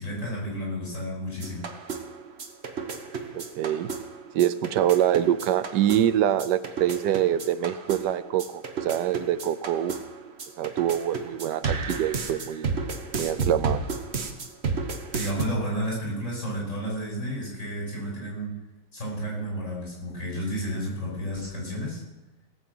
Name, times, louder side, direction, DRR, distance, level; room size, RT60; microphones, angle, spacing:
voice 1, 0.0-1.7 15.1-18.5 18.9-22.0, equal, 45° left, -3 dB, 6.2 m, -31 dB
sound 1, 1.4-15.5, right 4 dB, 45° right, 1.2 m, -33 dB
voice 2, 3.3-3.9 4.3-8.4 8.8-10.0 10.6-12.7 13.2-13.8, right 11 dB, 85° right, 14 dB, 1.3 m, -25 dB
17.5 x 6.4 x 7.7 m, 1.0 s
omnidirectional pair, 1.8 m